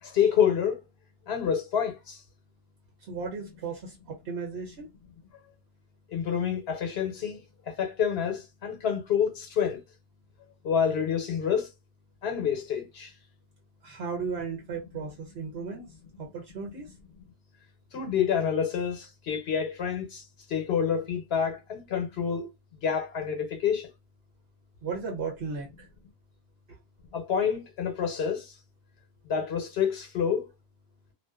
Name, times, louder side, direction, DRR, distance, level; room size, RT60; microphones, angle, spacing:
voice 1, 0.0-0.8 1.3-2.2 6.1-9.8 10.6-11.7 12.2-13.1 17.9-22.5 22.8-23.9 27.1-28.6 29.2-30.5, left 7 dB, 75° left, 0.9 m, -28 dB
voice 2, 3.0-4.9 13.8-15.8 16.2-16.9 24.8-25.9 26.7-26.8, right 5 dB, 80° right, 1.0 m, -35 dB
2.5 x 2.2 x 2.2 m
omnidirectional pair, 1.1 m